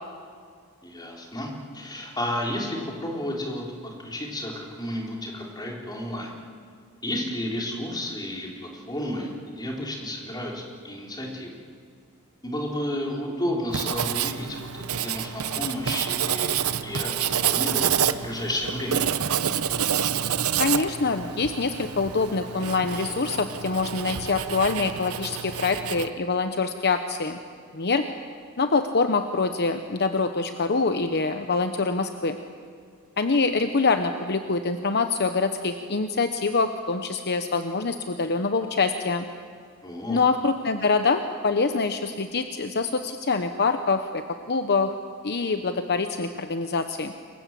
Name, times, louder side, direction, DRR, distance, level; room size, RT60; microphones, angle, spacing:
voice 1, 0.8-6.3 7.0-11.6 12.4-19.1 39.8-40.2, left 1 dB, 20° left, -1 dB, 4.3 m, -32 dB
Writing, 13.7-26.1, right 8 dB, 70° right, 1.0 m, -28 dB
voice 2, 20.6-27.4 27.7-28.1 28.6-32.4 33.2-39.3 40.1-44.9 45.2-47.1, left 4 dB, 50° left, 8 dB, 1.0 m, -25 dB
28.5 x 23.5 x 7.7 m, 2.1 s
head